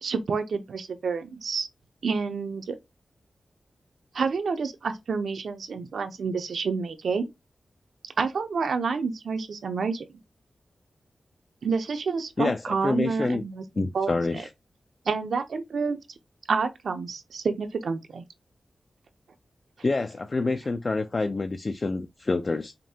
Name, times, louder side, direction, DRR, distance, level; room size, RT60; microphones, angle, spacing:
voice 1, 0.0-1.7 2.0-2.7 4.1-7.3 8.2-10.1 11.6-14.4 15.1-16.0 16.5-18.2, right 5 dB, 75° right, 0.7 m, -29 dB
voice 2, 12.4-13.4 13.8-14.5 19.8-22.7, left 3 dB, 35° left, 0.4 m, -27 dB
5.1 x 2.7 x 2.7 m
wide cardioid pair, 115°, 0 cm